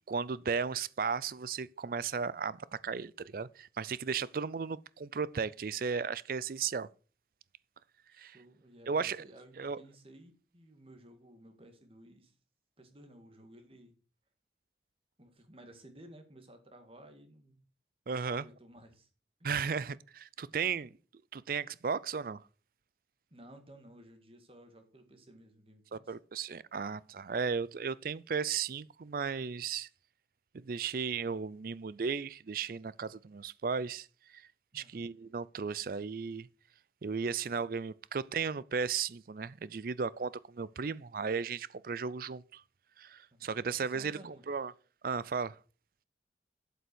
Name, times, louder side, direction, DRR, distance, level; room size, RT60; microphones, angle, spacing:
voice 1, 0.1-6.9 8.2-8.4 8.9-9.2 9.6-9.8 18.1-18.4 19.4-20.9 21.3-22.4 25.9-29.9 30.5-34.1 34.3-34.5 34.7-36.5 37.0-42.6 43.0-44.7 45.0-45.6, right 5 dB, 50° right, 0.4 m, -35 dB
voice 2, 8.1-12.3 12.8-13.9 15.2-17.6 18.2-19.1 19.4-19.5 23.3-26.1 34.7-35.0 43.3-43.5 43.8-44.5, right 1 dB, 30° right, 1.9 m, -56 dB
8.3 x 7.8 x 6.2 m
head